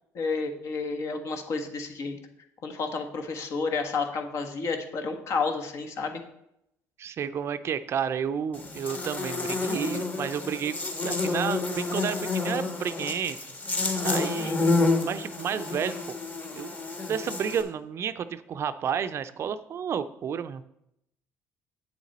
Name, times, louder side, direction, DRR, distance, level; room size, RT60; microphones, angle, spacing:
voice 1, 0.1-2.2 2.6-6.2 14.4-14.7, left 4 dB, 55° left, 5 dB, 1.4 m, -31 dB
voice 2, 7.0-10.8 11.0-13.4 14.0-14.7 15.0-16.0 16.5-16.8 17.1-20.6, right 8 dB, 50° right, 12 dB, 0.5 m, -31 dB
Buzz, 8.5-17.6, left 3 dB, 25° left, 1.5 m, -29 dB
8.8 x 7.3 x 4.2 m, 0.78 s
cardioid pair, 105°, 6 cm